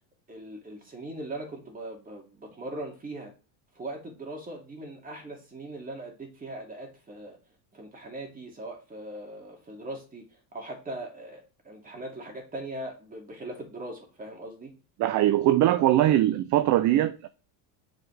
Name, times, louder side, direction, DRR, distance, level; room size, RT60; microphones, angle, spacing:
voice 1, 0.3-3.3 3.7-7.4 7.7-10.2 10.5-14.7 15.7-16.2, right 1 dB, 15° right, 2.5 m, -40 dB
voice 2, 15.0-17.3, right 13 dB, 40° right, 0.5 m, -21 dB
7.8 x 5.0 x 3.4 m
supercardioid pair, 125°, 49 cm